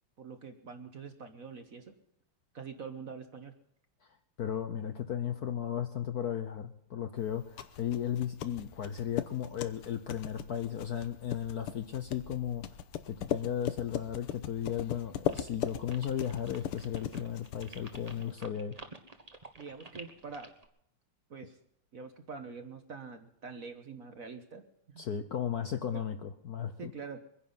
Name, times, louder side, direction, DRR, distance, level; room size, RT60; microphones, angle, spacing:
voice 1, 0.2-1.9 2.5-3.5 19.6-20.5 21.3-21.6 21.9-25.0 25.9-26.0 26.8-27.2, right 5 dB, 45° right, 7 dB, 1.3 m, -45 dB
voice 2, 4.4-12.7 13.1-18.8 25.0-26.9, left 9 dB, 60° left, 8 dB, 1.1 m, -35 dB
sound 1, 7.3-18.3, left 10 dB, 90° left, 1.8 m, -39 dB
sound 2, 15.3-20.7, right 3 dB, 25° right, 1.0 m, -50 dB
24.0 x 10.5 x 5.6 m, 0.72 s
omnidirectional pair, 2.4 m